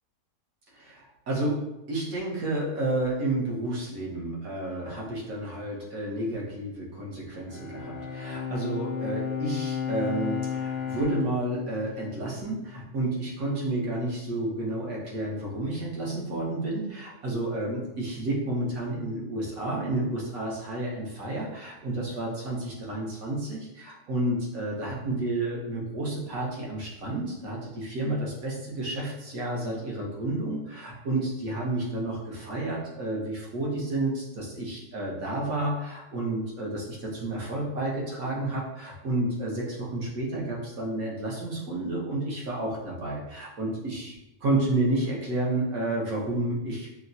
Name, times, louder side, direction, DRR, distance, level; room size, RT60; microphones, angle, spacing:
voice 1, 0.7-44.2 44.4-46.9, right 2 dB, 70° right, -4 dB, 1.4 m, -31 dB
Bowed string instrument, 7.4-12.9, left 7 dB, 70° left, 0.6 m, -34 dB
5.6 x 2.1 x 2.6 m, 0.93 s
omnidirectional pair, 1.6 m